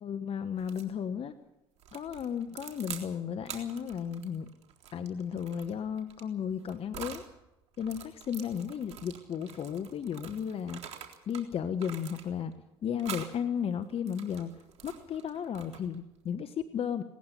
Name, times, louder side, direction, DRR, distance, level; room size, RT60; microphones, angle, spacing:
voice 1, 0.0-1.3 1.9-4.5 4.9-7.3 7.8-11.0 11.3-12.5 12.8-17.0, left 8 dB, 45° left, 10 dB, 1.2 m, -34 dB
sound 1, 0.6-0.9 1.8-3.1 3.4-7.3 7.7-11.5 11.8-12.5 13.0-13.3 13.9-16.0, right 9 dB, 55° right, 3.7 m, -46 dB
19.0 x 15.0 x 9.7 m, 0.96 s
hypercardioid pair, 65°, 13 cm